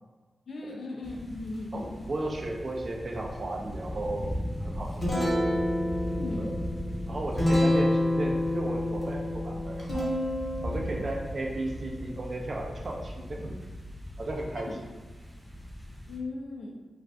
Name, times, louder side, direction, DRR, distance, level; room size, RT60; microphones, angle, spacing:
voice 1, 0.5-2.0 6.2-6.6 14.6-14.7 16.1-16.8, left 2 dB, 75° left, 0 dB, 0.5 m, -37 dB
sound 1, 1.0-16.2, equal, 10° right, 0.7 m, -39 dB
voice 2, 1.7-4.3 4.6-5.6 6.4-6.5 7.1-10.2 10.6-13.6 14.2-14.9, right 2 dB, 50° right, 0 dB, 0.5 m, -35 dB
Guitar, 4.6-14.3, left 1 dB, 40° left, 1.0 m, -30 dB
2.4 x 2.4 x 3.3 m, 1.3 s
cardioid pair, 70°, 0 cm